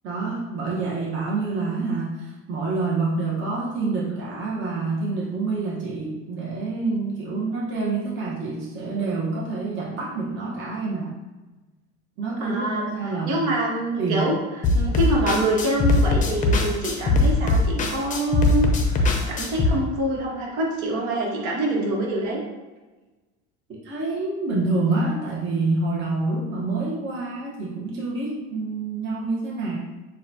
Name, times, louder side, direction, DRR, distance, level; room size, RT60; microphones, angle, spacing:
voice 1, 0.0-11.2 12.2-13.5 13.9-14.3 23.7-29.8, right 3 dB, 40° right, -5 dB, 1.0 m, -27 dB
voice 2, 12.4-22.4, right 1 dB, 65° right, -2 dB, 1.4 m, -26 dB
sound 1, 14.6-19.7, left 2 dB, 25° left, 0.6 m, -21 dB
6.9 x 2.3 x 2.7 m, 1.2 s
supercardioid pair, 125°, 31 cm